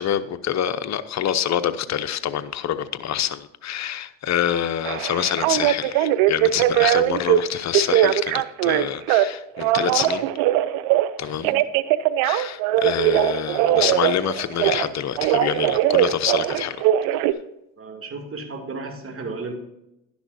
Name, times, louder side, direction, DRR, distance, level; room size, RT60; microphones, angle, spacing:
voice 1, 0.0-10.3 11.2-11.5 12.2-16.9, left 10 dB, 50° left, 0.8 m, -26 dB
Telephone, 4.9-7.4 7.7-9.3 9.6-11.1 11.4-14.9 15.2-17.3, right 13 dB, 85° right, 0.6 m, -20 dB
voice 2, 17.8-19.5, right 3 dB, 35° right, 2.7 m, -34 dB
11.0 x 10.5 x 2.7 m
supercardioid pair, 75°, 36 cm